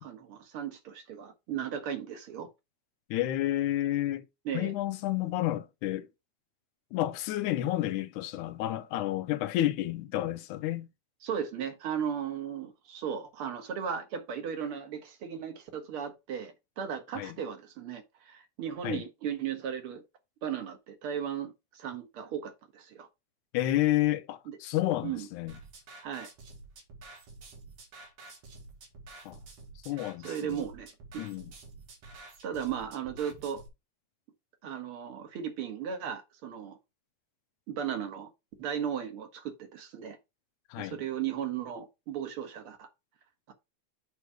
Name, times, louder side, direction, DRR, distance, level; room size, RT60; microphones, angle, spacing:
voice 1, 0.0-2.5 4.5-4.7 11.2-20.0 20.4-23.1 24.5-24.6 25.0-25.3 26.0-26.3 30.2-30.9 31.1-31.2 32.4-33.6 34.6-36.8 37.7-38.3 38.6-40.2 40.8-42.9 43.5-43.6, right 8 dB, 55° right, 1.9 m, -36 dB
voice 2, 3.1-4.3 4.5-6.1 6.9-10.9 17.2-17.4 18.8-19.0 23.5-25.6 29.3-29.4 29.9-30.6 31.2-31.5 40.7-41.0, left 14 dB, 90° left, 2.1 m, -30 dB
sound 1, 25.5-33.7, right 3 dB, 85° right, 3.2 m, -50 dB
7.4 x 3.2 x 6.1 m
omnidirectional pair, 3.5 m